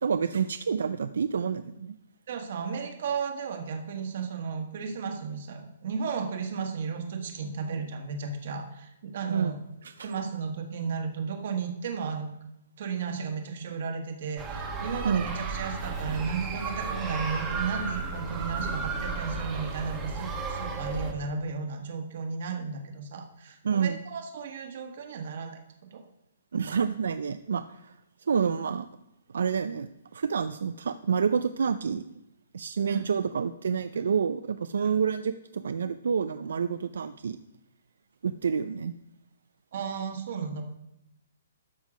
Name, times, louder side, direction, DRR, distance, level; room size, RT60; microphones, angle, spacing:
voice 1, 0.0-2.0 9.3-9.5 9.8-10.1 15.0-15.3 23.6-24.0 26.5-27.9 28.3-28.9 29.3-32.2 32.5-37.4 38.2-38.9, right 6 dB, 75° right, 11 dB, 0.4 m, -28 dB
voice 2, 2.3-9.6 10.0-12.3 12.8-25.6 25.9-26.0 32.8-33.0 34.0-34.1 34.8-34.9 39.7-40.6, right 5 dB, 45° right, 4 dB, 1.4 m, -34 dB
sound 1, 14.4-21.1, right 4 dB, 10° right, 1.1 m, -33 dB
12.5 x 5.6 x 4.9 m, 0.85 s
hypercardioid pair, 170°, 0 cm